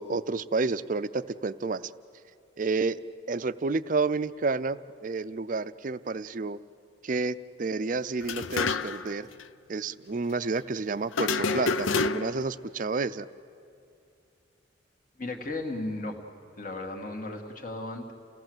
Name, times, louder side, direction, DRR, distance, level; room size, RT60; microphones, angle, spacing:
voice 1, 0.0-1.8 2.6-3.0 3.3-6.6 7.0-9.3 9.7-13.3, right 3 dB, 40° right, 14 dB, 0.5 m, -30 dB
sound 1, 8.2-9.1 9.4-9.5 11.1-12.5, left 4 dB, 80° left, 0.6 m, -28 dB
voice 2, 15.2-16.2 16.6-18.1, left 2 dB, 40° left, 2 dB, 1.9 m, -35 dB
29.0 x 17.0 x 7.9 m, 2.5 s
head